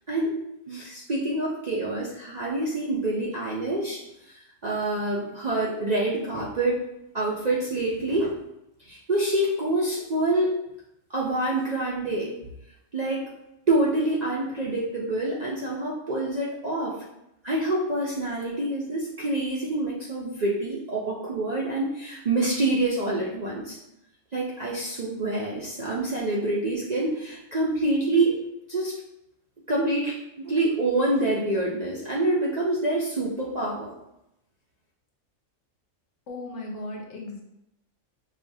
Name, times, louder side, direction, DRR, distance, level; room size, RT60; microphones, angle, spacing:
voice 1, 0.7-6.8 7.1-8.4 8.8-10.5 11.1-12.3 12.9-13.2 13.7-17.0 17.4-23.8 24.3-28.4 28.7-28.9 29.7-33.9, right 2 dB, 50° right, -5 dB, 0.5 m, -26 dB
voice 2, 36.3-37.4, left 2 dB, 70° left, -1 dB, 1.0 m, -36 dB
5.4 x 2.3 x 2.6 m, 0.85 s
omnidirectional pair, 1.3 m